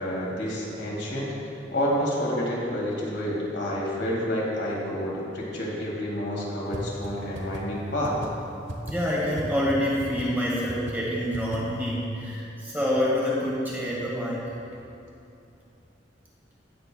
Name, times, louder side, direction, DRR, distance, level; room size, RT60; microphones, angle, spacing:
voice 1, 0.0-8.2, equal, 65° left, -4 dB, 2.0 m, -29 dB
sound 1, 6.7-6.8 7.0-7.1 7.4-7.6 8.0-8.3 8.7-8.9 9.4-9.5 9.7-9.8 10.0-10.3 10.7-10.9 11.3-11.6, right 1 dB, 80° right, 1.0 m, -35 dB
voice 2, 8.9-14.4, equal, 10° right, -6 dB, 1.8 m, -27 dB
17.0 x 6.8 x 2.3 m, 2.7 s
head